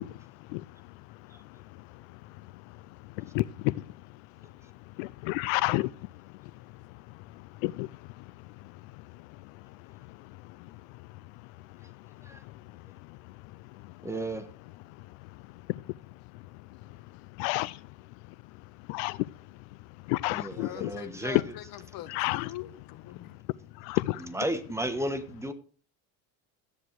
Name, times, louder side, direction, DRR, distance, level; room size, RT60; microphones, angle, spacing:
voice 1, 0.0-14.1 14.9-16.0 16.3-18.3 18.8-20.9 22.1-22.5 23.7-24.3, left 21 dB, 80° left, 0.6 m, -36 dB
voice 2, 4.4-4.7 12.2-12.4 14.0-14.5 20.3-21.5 24.2-25.5, right 1 dB, 5° right, 1.4 m, -34 dB
voice 3, 20.6-23.4, left 13 dB, 60° left, 1.8 m, -43 dB
13.5 x 9.7 x 4.7 m
cardioid pair, 120°, 40 cm